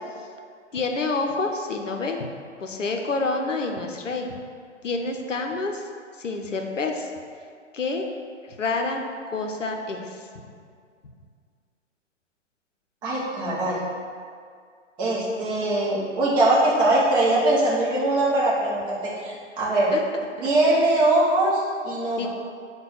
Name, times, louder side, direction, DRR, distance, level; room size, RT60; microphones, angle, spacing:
voice 1, 0.7-2.2 2.6-4.3 4.8-5.8 6.2-7.1 7.7-8.0 8.6-9.0 9.3-10.0 19.9-20.0 20.4-20.5 22.2-22.3, left 3 dB, 80° left, 3 dB, 0.6 m, -27 dB
voice 2, 13.0-13.8 15.0-19.9 20.4-22.3, right 2 dB, 10° right, -6 dB, 0.6 m, -22 dB
5.6 x 2.3 x 3.8 m, 2.2 s
figure-of-eight pair, 120°, 37 cm